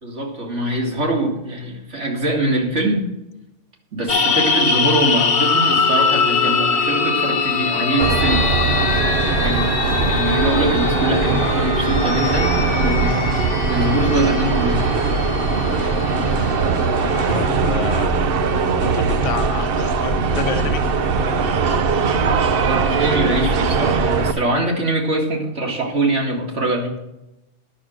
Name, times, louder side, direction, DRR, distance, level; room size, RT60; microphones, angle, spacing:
voice 1, 0.0-3.1 3.9-8.5 9.2-13.4 13.7-14.9 22.6-27.0, right 1 dB, 75° right, 0 dB, 2.6 m, -23 dB
sound 1, 4.1-17.5, left 5 dB, 65° left, 1.1 m, -22 dB
Wind instrument woodwind instrument, 5.4-9.1, left 5 dB, 35° left, 1.5 m, -41 dB
sound 2, 8.0-24.3, right 4 dB, 55° right, 0.9 m, -20 dB
voice 2, 17.2-18.1 18.9-20.8, left 6 dB, 90° left, 10 dB, 1.1 m, -28 dB
10.5 x 6.4 x 6.3 m, 0.94 s
omnidirectional pair, 1.2 m